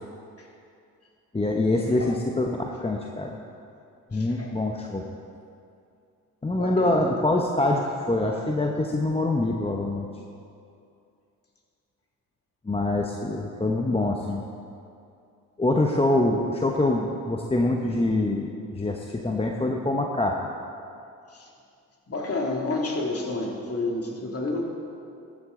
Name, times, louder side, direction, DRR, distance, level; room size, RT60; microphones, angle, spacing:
voice 1, 1.3-3.4 4.1-5.0 6.4-10.1 12.7-14.4 15.6-20.4, left 2 dB, 15° left, 1 dB, 1.0 m, -25 dB
voice 2, 4.1-4.5 6.5-7.0 21.3-21.5 22.1-24.6, left 2 dB, 40° left, -1 dB, 2.5 m, -30 dB
14.5 x 9.8 x 3.8 m, 2.5 s
hypercardioid pair, 55°, 38 cm